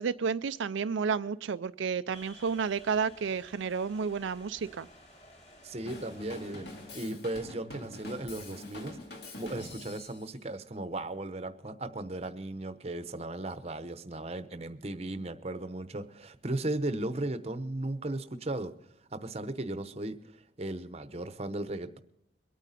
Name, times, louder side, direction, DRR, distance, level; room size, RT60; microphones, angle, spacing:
voice 1, 0.0-4.9, right 6 dB, 80° right, 11 dB, 0.4 m, -31 dB
sound 1, 2.1-7.1, equal, 35° left, 4.7 m, -54 dB
voice 2, 5.6-6.7 6.9-9.0 9.4-18.7 19.1-22.0, right 2 dB, 30° right, 10 dB, 0.8 m, -36 dB
Drum kit / Drum, 5.9-10.3, left 1 dB, 55° left, 2.2 m, -45 dB
23.0 x 9.1 x 4.2 m, 0.76 s
head